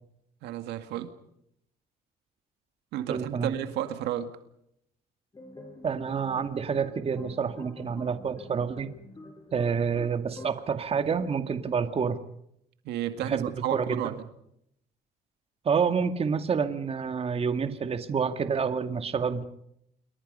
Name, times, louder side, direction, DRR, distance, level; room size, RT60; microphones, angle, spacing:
voice 1, 0.4-1.1 2.9-4.3 12.8-14.2, right 12 dB, 85° right, 2.1 m, -32 dB
voice 2, 3.1-3.5 5.8-8.9 9.5-12.2 13.2-13.4 13.7-14.0 15.7-19.5, right 6 dB, 35° right, 2.1 m, -28 dB
sound 1, 5.3-10.6, left 2 dB, 20° left, 7.3 m, -47 dB
28.5 x 22.5 x 5.5 m
cardioid pair, 110°, 17 cm